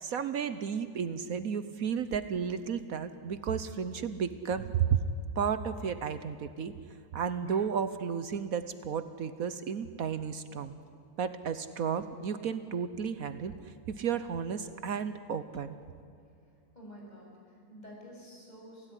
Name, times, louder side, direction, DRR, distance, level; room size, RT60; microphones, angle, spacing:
voice 1, 0.0-4.9 5.4-6.7 7.1-10.7 11.2-15.8, right 7 dB, 65° right, 12 dB, 1.3 m, -33 dB
voice 2, 16.2-18.9, equal, 25° left, -3 dB, 7.3 m, -51 dB
27.5 x 17.0 x 10.0 m, 2.4 s
omnidirectional pair, 1.7 m